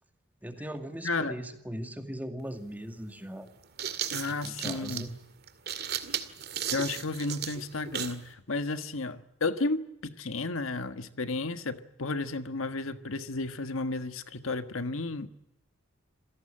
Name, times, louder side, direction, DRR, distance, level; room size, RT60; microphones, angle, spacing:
voice 1, 0.4-3.5 4.4-5.1, equal, 10° right, 2.3 m, -39 dB
voice 2, 1.0-1.4 4.1-5.1 6.7-15.3, left 3 dB, 80° left, 1.6 m, -33 dB
sound 1, 2.4-2.5 3.5-8.2, right 9 dB, 50° right, 2.1 m, -35 dB
27.5 x 17.0 x 8.8 m
head